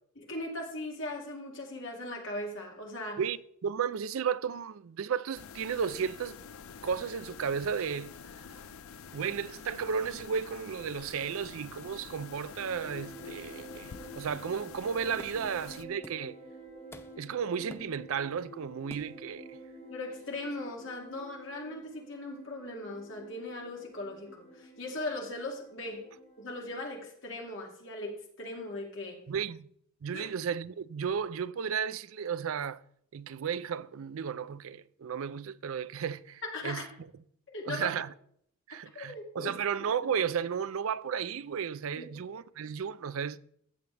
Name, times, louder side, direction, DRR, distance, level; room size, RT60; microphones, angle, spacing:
voice 1, 0.2-3.2 19.9-26.0 26.4-29.2 30.1-30.3 36.4-36.9 37.5-37.9 38.7-39.9 42.0-42.1, left 2 dB, 60° left, 2.4 m, -39 dB
voice 2, 3.2-6.4 6.8-8.1 9.1-16.4 17.2-19.4 29.3-29.7 30.0-32.8 33.1-36.8 37.7-38.1 38.7-43.4, right 7 dB, 70° right, 0.4 m, -34 dB
sound 1, 5.3-15.8, left 6 dB, 75° left, 0.5 m, -47 dB
sound 2, 12.5-26.8, right 1 dB, 25° left, 2.2 m, -50 dB
sound 3, 15.2-15.6 16.0-16.3 16.7-17.3 17.7-18.3 18.9-19.3, left 1 dB, 10° left, 0.5 m, -50 dB
14.5 x 7.0 x 3.3 m
head